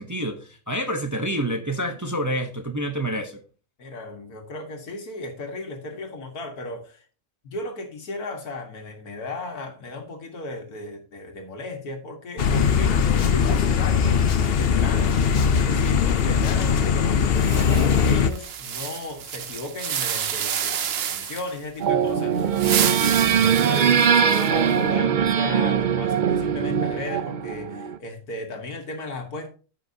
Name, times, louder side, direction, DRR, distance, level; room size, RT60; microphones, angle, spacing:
voice 1, 0.0-3.4, equal, 15° right, 0.7 m, -28 dB
voice 2, 3.8-7.0 7.4-23.2 23.5-29.5, left 2 dB, 85° left, 2.2 m, -35 dB
sound 1, 12.4-18.3, left 6 dB, 55° left, 0.8 m, -20 dB
sound 2, 17.4-21.6 22.4-24.7, right 9 dB, 55° right, 0.8 m, -29 dB
sound 3, 21.8-28.0, right 8 dB, 80° right, 0.4 m, -21 dB
14.5 x 5.8 x 2.8 m
omnidirectional pair, 1.5 m